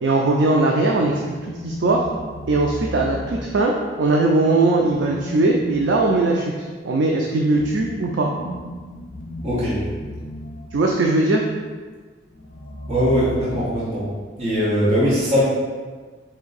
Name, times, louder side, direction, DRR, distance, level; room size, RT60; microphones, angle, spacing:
voice 1, 0.0-2.1 2.5-6.5 6.8-8.3 10.7-11.4, right 2 dB, 80° right, 0 dB, 0.4 m, -20 dB
sound 1, 0.7-4.0 4.7-11.3 12.3-14.2, left 1 dB, 50° left, 0.6 m, -35 dB
voice 2, 9.4-9.8 12.9-14.1 14.4-15.4, equal, 35° right, -9 dB, 0.9 m, -20 dB
4.3 x 2.6 x 3.9 m, 1.4 s
head